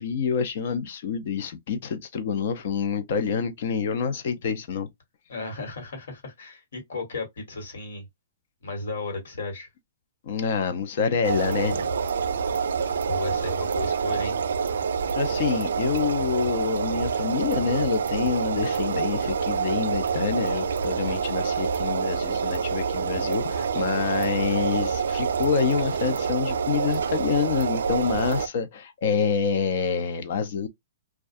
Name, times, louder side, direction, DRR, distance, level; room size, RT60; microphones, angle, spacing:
voice 1, 0.0-4.9 10.2-11.9 15.2-30.7, left 6 dB, 45° left, 0.5 m, -27 dB
voice 2, 5.3-8.0 8.6-9.7 13.1-14.4, left 3 dB, 75° left, 1.5 m, -34 dB
sound 1, 11.2-28.5, right 6 dB, 85° right, 0.3 m, -27 dB
2.3 x 2.2 x 2.5 m
hypercardioid pair, 170°, 0 cm